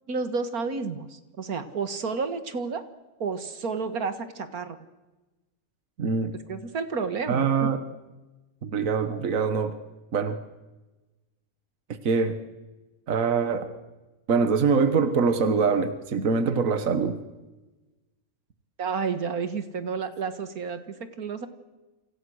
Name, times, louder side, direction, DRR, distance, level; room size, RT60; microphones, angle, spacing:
voice 1, 0.1-2.8 3.2-4.8 6.5-7.7 18.8-21.5, right 5 dB, 80° right, 10 dB, 2.2 m, -31 dB
voice 2, 6.0-6.3 7.3-7.8 8.6-9.7 10.1-10.4 12.0-12.4 13.1-13.7 14.3-17.2, right 5 dB, 65° right, 10 dB, 1.8 m, -24 dB
29.0 x 26.0 x 6.5 m, 1.1 s
omnidirectional pair, 1.5 m